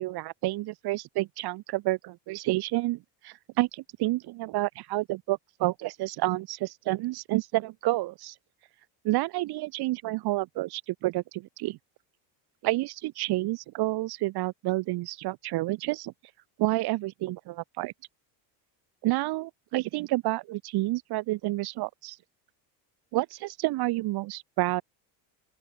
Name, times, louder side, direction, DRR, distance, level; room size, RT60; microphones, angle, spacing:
voice 1, 0.0-8.3 9.0-11.8 12.6-16.1 16.6-17.9 19.0-22.2 23.1-24.8, right 18 dB, 50° right, 1.4 m, -29 dB
open air
cardioid pair, 150°, 50 cm